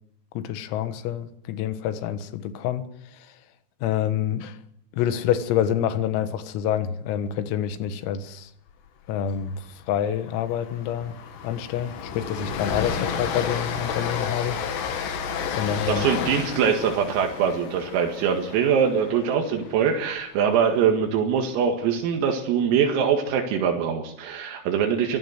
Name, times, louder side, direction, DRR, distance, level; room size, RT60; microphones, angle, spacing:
voice 1, 0.4-2.9 3.8-4.6 4.9-8.5 9.1-11.2 11.4-14.6 15.5-16.1, left 10 dB, 85° left, 4.1 m, -27 dB
Train, 9.1-9.4 9.7-9.9 10.2-20.4, left 6 dB, 65° left, 3.7 m, -32 dB
voice 2, 15.9-25.2, right 7 dB, 80° right, 4.6 m, -23 dB
24.5 x 16.5 x 8.1 m
omnidirectional pair, 6.0 m